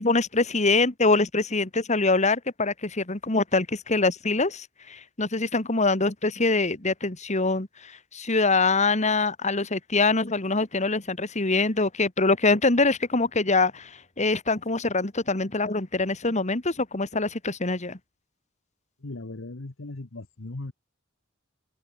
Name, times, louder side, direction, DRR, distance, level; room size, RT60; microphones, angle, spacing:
voice 1, 0.0-18.0, left 3 dB, 35° left, 2.1 m, -24 dB
voice 2, 19.0-20.7, left 2 dB, 85° left, 1.2 m, -38 dB
open air
head